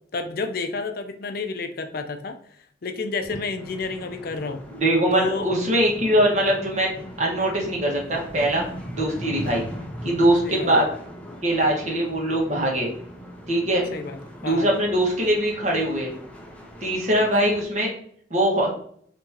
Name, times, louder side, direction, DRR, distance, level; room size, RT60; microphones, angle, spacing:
voice 1, 0.1-2.3 2.8-4.6 5.1-5.5 10.4-10.7 13.9-14.2 14.4-14.7, left 4 dB, 55° left, 7 dB, 0.5 m, -30 dB
sound 1, 3.6-17.6, equal, 5° left, 0.6 m, -39 dB
voice 2, 4.7-9.6 10.0-10.9 11.4-12.9 13.5-13.8 14.4-16.1 16.8-17.9 18.3-18.7, right 1 dB, 40° right, -1 dB, 1.4 m, -22 dB
5.8 x 3.0 x 2.8 m, 0.63 s
head